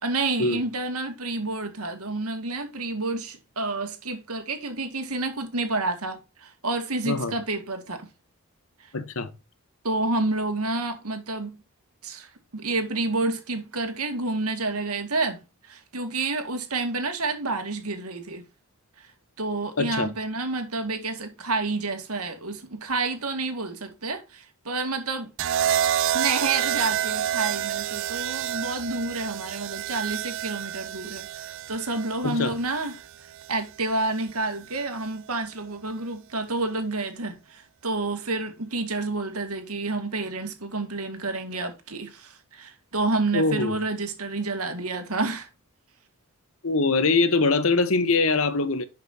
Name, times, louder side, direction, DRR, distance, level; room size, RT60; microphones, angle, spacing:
voice 1, 0.0-8.1 9.8-11.6 12.0-15.4 15.7-18.4 19.4-25.3 26.1-33.0 33.5-45.5, right 3 dB, 80° right, 2.3 m, -29 dB
voice 2, 8.9-9.3 19.8-20.1 32.2-32.5 43.3-43.8 46.6-48.9, left 3 dB, 70° left, 1.1 m, -23 dB
sound 1, 25.4-33.5 34.7-35.1, right 10 dB, 60° right, 0.4 m, -29 dB
11.5 x 5.9 x 2.9 m
head